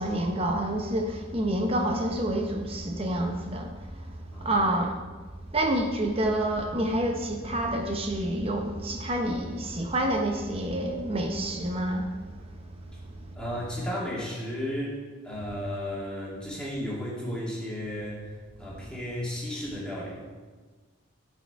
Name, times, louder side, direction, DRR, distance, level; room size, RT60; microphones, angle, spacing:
voice 1, 0.0-4.9 5.5-12.1, right 1 dB, 25° right, 3 dB, 0.7 m, -28 dB
voice 2, 4.3-4.7 13.3-15.0 15.2-18.3 18.6-20.3, equal, 5° left, -7 dB, 2.2 m, -34 dB
12.0 x 4.9 x 4.7 m, 1.4 s
head